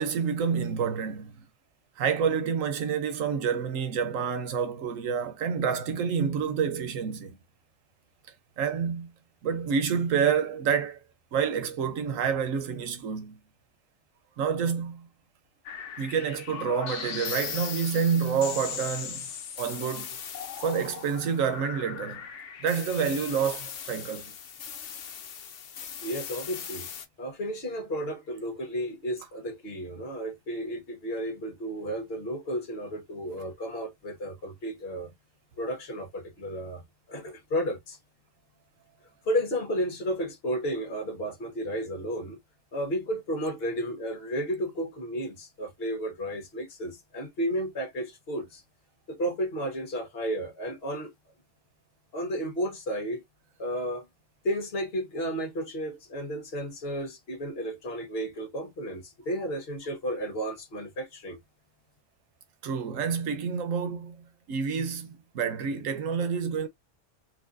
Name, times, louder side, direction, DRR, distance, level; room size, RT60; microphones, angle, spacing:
voice 1, 0.0-1.4 2.0-7.4 8.6-9.1 9.4-11.0 11.3-13.4 14.4-15.1 16.0-19.3 19.6-20.2 20.6-22.3 22.6-24.3 62.6-66.7, right 6 dB, 85° right, 1.2 m, -28 dB
sound 1, 15.7-27.1, left 8 dB, 70° left, 1.0 m, -38 dB
voice 2, 26.0-26.9 27.2-35.1 35.6-38.0 39.2-42.4 42.7-48.6 49.1-51.1 52.1-53.2 53.6-54.1 54.4-61.4, equal, 50° left, 1.4 m, -33 dB
4.1 x 2.6 x 2.5 m
omnidirectional pair, 1.3 m